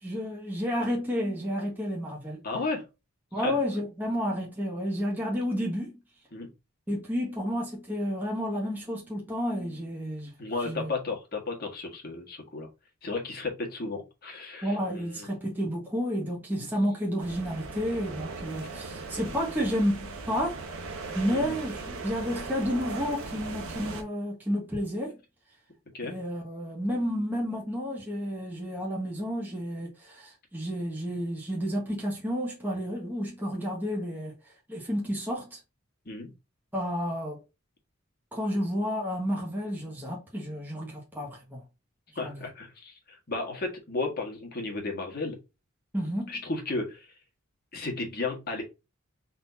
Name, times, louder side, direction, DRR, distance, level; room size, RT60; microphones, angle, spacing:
voice 1, 0.0-2.4 3.3-6.0 6.9-10.3 10.6-10.9 14.6-20.8 21.1-25.2 26.0-34.3 34.7-35.6 36.7-37.4 38.3-41.6 42.2-42.5 45.9-46.4, equal, 10° right, 1.4 m, -31 dB
voice 2, 2.4-2.9 3.3-3.5 6.3-6.5 10.4-12.7 13.0-15.3 16.5-16.7 21.3-21.5 25.9-26.2 36.0-36.3 42.1-45.4 46.3-47.1 47.7-48.6, left 3 dB, 45° left, 1.7 m, -34 dB
sound 1, 17.2-24.0, right 3 dB, 85° right, 1.1 m, -38 dB
4.0 x 3.9 x 2.7 m
head